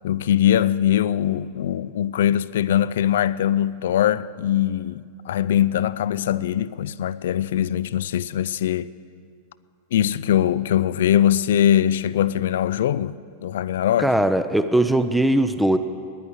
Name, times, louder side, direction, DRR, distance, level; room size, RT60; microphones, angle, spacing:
voice 1, 0.0-8.9 9.9-13.1 13.4-14.1, left 11 dB, 60° left, 0.4 m, -21 dB
voice 2, 14.0-15.8, right 1 dB, 5° right, 0.7 m, -20 dB
15.5 x 10.5 x 8.6 m
figure-of-eight pair, 90°, 0 cm